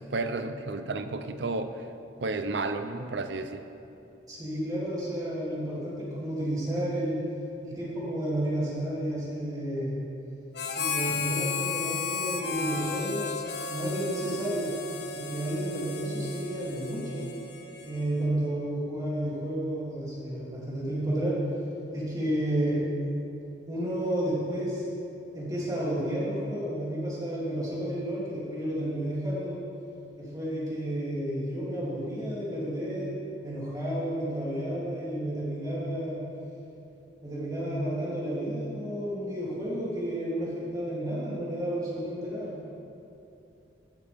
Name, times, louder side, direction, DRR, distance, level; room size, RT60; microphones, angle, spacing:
voice 1, 0.0-1.8 2.2-3.6, right 3 dB, 80° right, 9 dB, 0.7 m, -32 dB
voice 2, 4.3-7.2 7.6-10.0 10.7-13.4 13.7-14.7 15.1-17.3 17.8-21.3 21.9-22.8 23.7-24.8 25.3-29.6 30.2-33.1 33.4-36.2 37.2-42.6, right 1 dB, 20° right, -7 dB, 2.9 m, -31 dB
Harmonica, 10.5-18.3, left 5 dB, 65° left, 0.9 m, -34 dB
14.0 x 11.5 x 3.6 m, 2.8 s
head